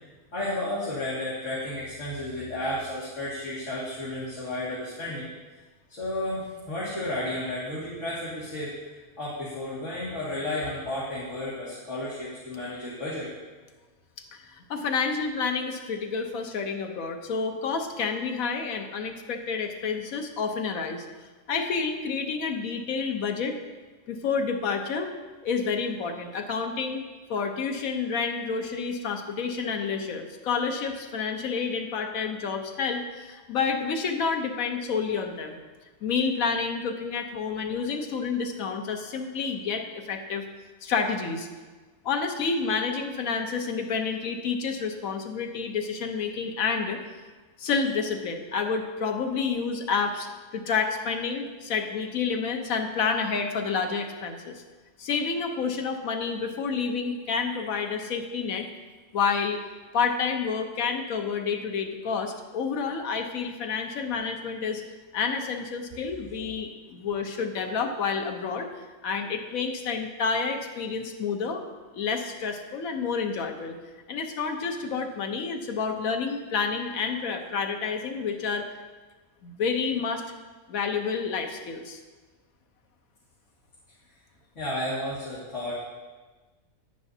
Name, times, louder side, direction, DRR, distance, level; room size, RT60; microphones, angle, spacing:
voice 1, 0.3-5.3 5.9-13.3 84.6-85.7, left 1 dB, 60° left, -9 dB, 2.4 m, -32 dB
voice 2, 14.3-21.1 21.5-23.6 24.1-25.1 25.4-35.6 36.0-40.4 40.8-41.5 42.0-47.0 47.6-50.3 50.5-54.6 55.0-58.7 59.1-59.6 59.9-64.8 65.1-68.7 69.0-71.6 71.9-73.8 74.1-78.7 79.4-80.2 80.7-82.0, left 5 dB, 90° left, 5 dB, 1.3 m, -29 dB
10.0 x 9.9 x 2.7 m, 1.3 s
omnidirectional pair, 1.4 m